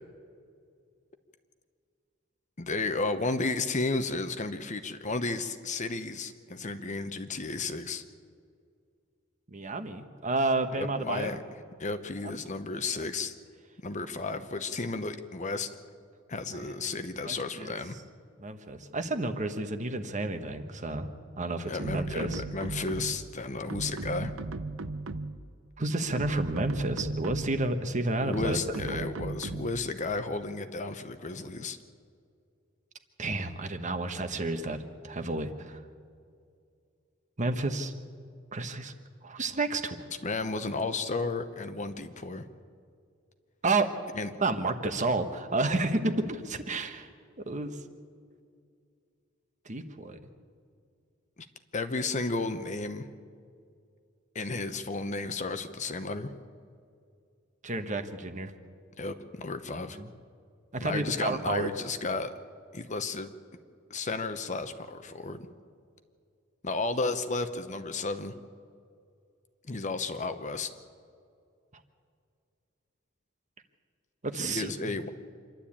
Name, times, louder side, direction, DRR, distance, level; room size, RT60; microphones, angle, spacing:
voice 1, 2.6-8.0 10.7-11.4 11.8-13.3 13.8-15.7 16.3-18.0 21.7-24.3 28.2-31.8 40.2-42.5 44.1-44.3 51.7-53.1 54.3-56.3 59.0-60.0 60.8-62.3 62.7-63.3 63.9-65.5 66.6-68.3 69.7-70.7 74.3-75.1, left 3 dB, 40° left, 9 dB, 1.0 m, -33 dB
voice 2, 9.5-11.3 12.2-12.3 16.5-16.7 17.3-17.7 18.4-21.1 21.4-22.4 25.8-28.6 28.9-29.1 33.2-35.8 37.4-37.9 38.5-38.9 39.2-40.0 43.6-43.9 44.4-47.1 47.4-47.7 49.6-50.2 57.6-58.5 59.9-60.1 60.7-61.7 74.2-74.9, right 2 dB, 40° right, 7 dB, 1.3 m, -31 dB
sound 1, 21.8-23.3 23.7-25.5 26.0-27.7 28.3-29.9, right 3 dB, 90° right, 0.8 m, -37 dB
26.5 x 12.0 x 8.7 m, 2.3 s
head